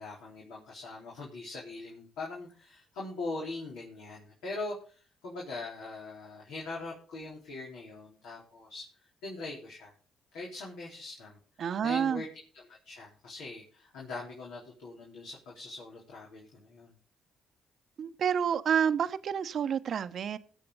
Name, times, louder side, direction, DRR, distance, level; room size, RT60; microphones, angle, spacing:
voice 1, 0.0-9.9 10.3-12.3 12.5-17.0, left 3 dB, 85° left, 4.0 m, -42 dB
voice 2, 11.6-12.2 18.0-20.4, right 8 dB, 65° right, 0.8 m, -29 dB
20.5 x 7.6 x 4.0 m
supercardioid pair, 60°, 0 cm